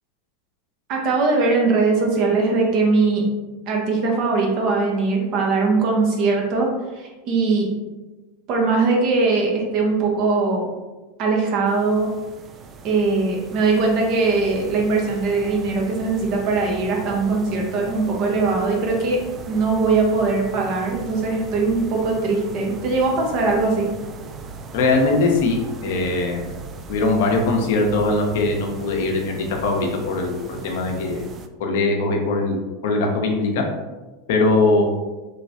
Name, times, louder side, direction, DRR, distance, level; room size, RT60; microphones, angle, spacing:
voice 1, 0.9-3.2 3.7-7.7 8.5-10.7 11.2-12.1 12.8-23.9, right 3 dB, 50° right, 0 dB, 0.9 m, -21 dB
sound 1, 11.7-31.5, right 4 dB, 35° right, 0.3 m, -38 dB
voice 2, 24.7-26.5 26.9-29.3 29.6-31.2 31.6-33.6 34.3-34.8, left 3 dB, 65° left, 1 dB, 0.6 m, -21 dB
3.1 x 3.0 x 2.7 m, 1.2 s
hypercardioid pair, 90°, 0 cm